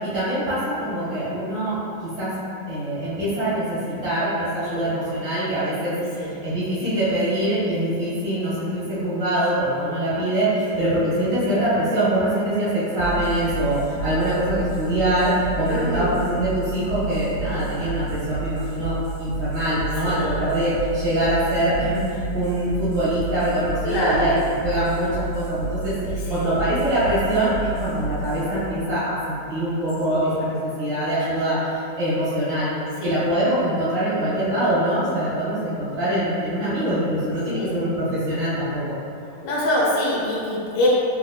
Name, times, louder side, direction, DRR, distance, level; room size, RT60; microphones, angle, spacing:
voice 1, 0.0-2.4 2.7-24.3 24.6-26.0 26.3-32.7 33.0-39.0, right 1 dB, 40° right, -13 dB, 1.7 m, -24 dB
voice 2, 4.6-4.9 5.9-6.3 10.7-10.9 15.7-16.1 20.1-20.4 23.8-24.4 26.0-26.6 30.1-30.4 31.2-31.6 33.0-33.1 37.5-37.8 39.4-40.9, left 1 dB, 50° left, -6 dB, 0.7 m, -26 dB
sound 1, 13.0-30.0, right 4 dB, 70° right, 0.8 m, -31 dB
4.7 x 3.1 x 2.2 m, 2.6 s
omnidirectional pair, 1.8 m